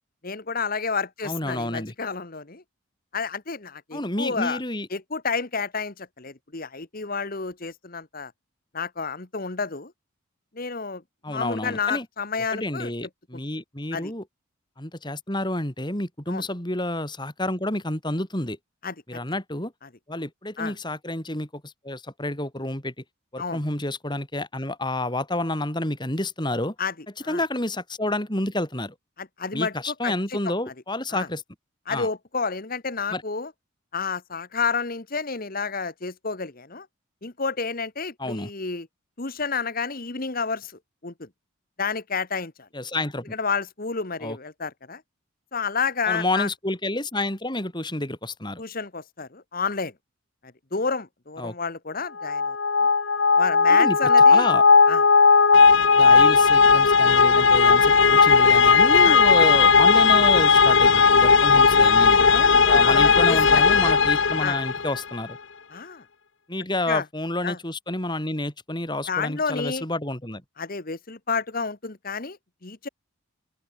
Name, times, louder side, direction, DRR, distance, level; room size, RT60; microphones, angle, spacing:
voice 1, 0.2-2.6 3.1-4.6 4.9-8.3 8.7-9.9 10.5-11.0 11.3-12.9 13.3-13.4 13.9-14.1 16.3-16.4 18.8-18.9 20.6-20.7 23.4-23.6 26.8-26.9 27.2-27.4 29.2-30.4 31.1-31.3 31.9-33.5 33.9-36.9 37.2-38.9 39.2-40.7 41.0-41.3 41.8-42.7 43.3-45.0 45.5-46.5 48.6-49.9 50.7-52.9 53.4-54.5 54.9-55.0 59.0-59.2 62.3-63.6 64.4-64.6 65.7-66.0 66.9-67.0 67.4-67.6 69.1-69.8 70.6-72.9, left 5 dB, 40° left, 1.4 m, -30 dB
voice 2, 1.2-1.9 3.9-4.9 11.2-12.1 12.5-14.2 14.8-18.6 19.1-19.7 20.1-22.9 23.3-26.8 27.3-28.9 29.5-31.4 31.9-32.1 33.1-33.2 38.2-38.5 42.7-43.3 44.2-44.4 46.1-48.6 51.4-51.5 53.7-54.6 56.0-62.2 62.6-65.4 66.5-70.4, left 1 dB, 20° left, 3.7 m, -29 dB
sound 1, 52.2-65.0, left 5 dB, 55° left, 1.1 m, -16 dB
open air
head